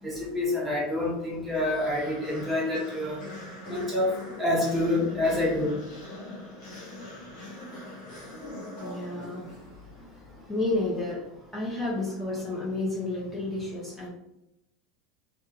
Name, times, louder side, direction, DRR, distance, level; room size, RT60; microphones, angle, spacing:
voice 1, 0.0-3.2 3.7-4.1 4.4-5.8, left 1 dB, 15° right, -4 dB, 1.2 m, -27 dB
sound 1, 1.5-10.0, left 1 dB, 60° left, 1.4 m, -42 dB
voice 2, 8.8-9.5 10.0-14.1, left 2 dB, 15° left, -6 dB, 1.0 m, -31 dB
2.7 x 2.5 x 2.5 m, 0.86 s
supercardioid pair, 105°, 0 cm